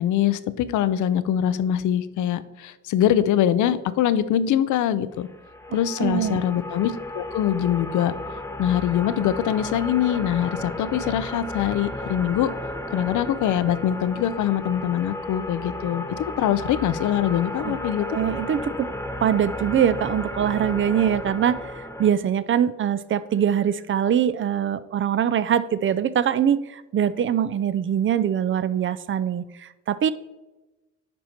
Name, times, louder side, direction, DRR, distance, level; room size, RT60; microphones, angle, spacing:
voice 1, 0.0-5.3 5.7-8.1 8.6-12.5 12.9-18.1, left 10 dB, 75° left, 14 dB, 0.6 m, -23 dB
sound 1, 5.3-22.1, left 1 dB, 10° left, 0.7 m, -33 dB
voice 2, 5.7-6.4 17.6-17.8 18.1-18.9 19.2-30.1, right 9 dB, 40° right, 15 dB, 0.4 m, -23 dB
10.5 x 4.4 x 4.3 m, 1.1 s
cardioid pair, 90°, 30 cm